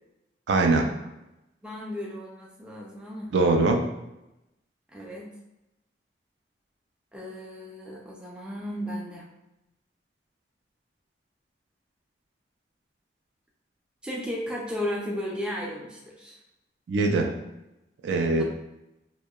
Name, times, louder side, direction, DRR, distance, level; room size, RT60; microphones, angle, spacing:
voice 1, 0.5-0.9 3.3-3.9 16.9-17.3 18.0-18.4, right 3 dB, 90° right, 2 dB, 0.4 m, -22 dB
voice 2, 1.6-3.3 4.9-5.3 7.1-9.3 14.0-16.4 18.3-18.4, left 1 dB, 5° right, -3 dB, 0.3 m, -34 dB
2.8 x 2.1 x 2.2 m, 0.92 s
head